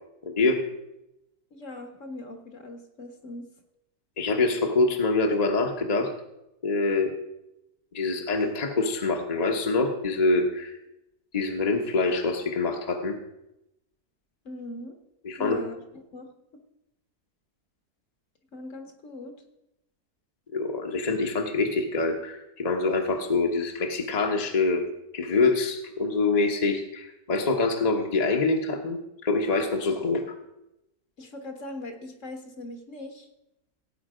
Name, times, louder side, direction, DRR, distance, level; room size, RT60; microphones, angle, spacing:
voice 1, 0.2-0.6 4.2-6.1 6.6-7.1 7.9-10.7 11.3-13.1 15.2-15.6 20.5-24.8 25.1-30.2, left 3 dB, 30° left, 2 dB, 1.1 m, -25 dB
voice 2, 1.5-3.5 14.5-15.0 15.4-15.8 16.1-16.3 18.5-19.3 31.2-33.3, left 2 dB, 50° left, 5 dB, 1.7 m, -40 dB
17.0 x 8.7 x 5.0 m, 0.90 s
omnidirectional pair, 1.7 m